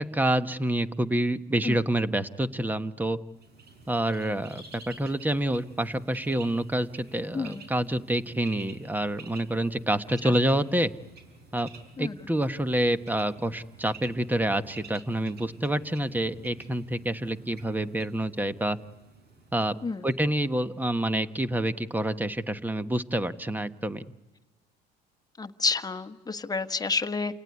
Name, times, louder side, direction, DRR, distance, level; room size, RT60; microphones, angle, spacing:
voice 1, 0.0-3.2 3.9-10.9 11.5-11.7 12.0-18.8 19.5-19.7 20.0-24.0, right 1 dB, 10° right, 12 dB, 1.2 m, -27 dB
Bird, 3.3-21.1, right 4 dB, 55° right, 5.9 m, -50 dB
voice 2, 7.3-7.7 10.2-10.3 12.0-12.2 19.8-20.0 25.4-27.3, left 4 dB, 20° left, 9 dB, 1.4 m, -30 dB
29.0 x 18.0 x 9.9 m, 1.2 s
supercardioid pair, 95°, 19 cm